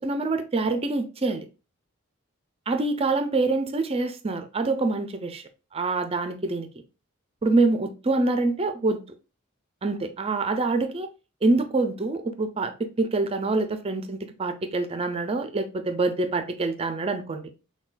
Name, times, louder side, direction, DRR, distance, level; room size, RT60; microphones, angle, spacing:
voice 1, 0.0-1.5 2.7-5.4 5.7-6.7 7.4-9.0 9.8-11.1 11.4-17.5, right 3 dB, 30° right, 0.5 m, -25 dB
5.9 x 2.2 x 2.5 m
head